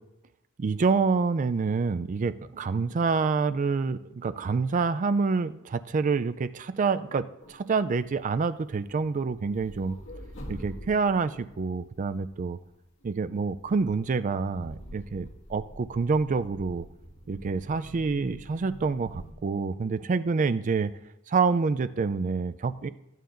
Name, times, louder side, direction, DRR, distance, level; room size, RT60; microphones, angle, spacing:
voice 1, 0.6-10.0 10.5-12.6 13.0-16.8 17.3-20.9 21.3-22.9, right 4 dB, 35° right, 13 dB, 0.3 m, -27 dB
sound 1, 7.4-8.3 8.5-12.7 13.3-19.3, equal, 70° left, 1.7 m, -46 dB
14.5 x 9.3 x 2.5 m, 0.93 s
head